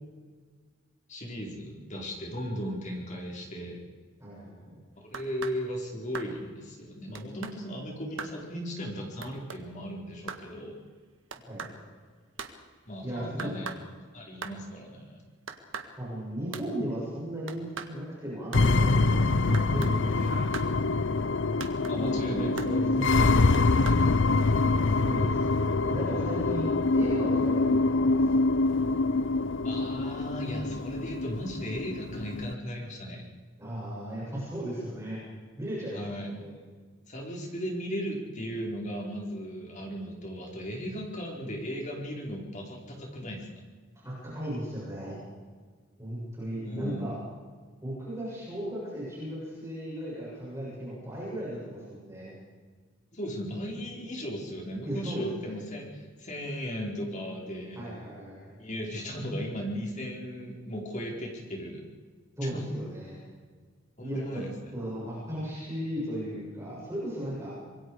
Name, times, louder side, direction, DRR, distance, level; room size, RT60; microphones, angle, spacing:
voice 1, 1.1-3.8 5.0-10.8 12.9-13.7 14.1-15.2 21.9-23.6 24.0-24.1 29.6-33.2 35.9-36.5 37.1-43.5 46.6-47.1 53.1-57.9 58.6-61.8 62.4-62.6 64.0-64.7, equal, 35° left, -1 dB, 4.7 m, -36 dB
voice 2, 4.2-4.8 11.5-11.7 13.0-13.5 16.0-20.4 22.0-23.4 24.6-28.5 33.6-35.2 35.6-36.5 44.0-45.2 46.0-47.2 47.8-52.4 54.8-55.6 57.7-58.6 62.4-63.2 64.0-64.4 64.7-67.5, right 1 dB, 15° right, -7 dB, 7.5 m, -36 dB
sound 1, 5.1-5.6 6.1-6.3 7.1-7.6 8.2-8.4 9.2-9.6 10.3-10.5 11.3-11.8 12.4-12.6 13.4-13.9 14.4-14.6 15.5-15.9 16.5-16.7 17.5-17.9 18.5-18.7 19.5-20.0 20.5-20.7 21.6-22.0 22.6-22.7 23.5-24.1, right 5 dB, 65° right, 1.7 m, -39 dB
sound 2, 18.5-32.5, left 3 dB, 65° left, 0.7 m, -25 dB
26.0 x 22.0 x 4.9 m, 1.5 s
head